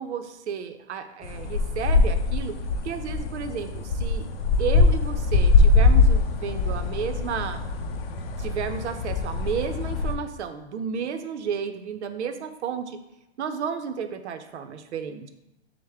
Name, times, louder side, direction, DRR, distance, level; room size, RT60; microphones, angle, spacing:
voice 1, 0.0-2.5 2.8-4.3 4.6-7.6 8.4-13.0 13.4-15.3, right 7 dB, 80° right, 8 dB, 0.6 m, -32 dB
sound 1, 1.2-10.2, left 3 dB, 60° left, 0.5 m, -22 dB
6.2 x 2.1 x 3.4 m, 0.90 s
hypercardioid pair, 145°, 34 cm